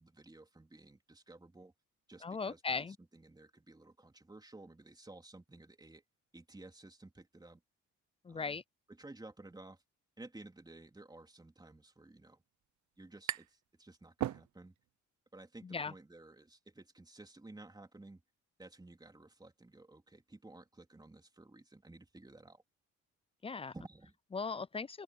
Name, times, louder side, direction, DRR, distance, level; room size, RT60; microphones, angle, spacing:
voice 1, 0.0-1.7 2.1-6.0 6.3-7.6 8.3-8.6 8.9-9.8 10.2-12.4 13.0-14.7 15.3-18.2 18.6-22.6 23.7-24.2, right 2 dB, 15° right, 3.5 m, -54 dB
voice 2, 2.2-3.0 8.2-8.6 15.7-15.9 23.4-23.7 24.3-25.0, left 4 dB, 20° left, 0.5 m, -38 dB
sound 1, 12.2-12.3 12.5-13.7 14.0-14.9, right 13 dB, 70° right, 1.0 m, -39 dB
open air
cardioid pair, 90°, 30 cm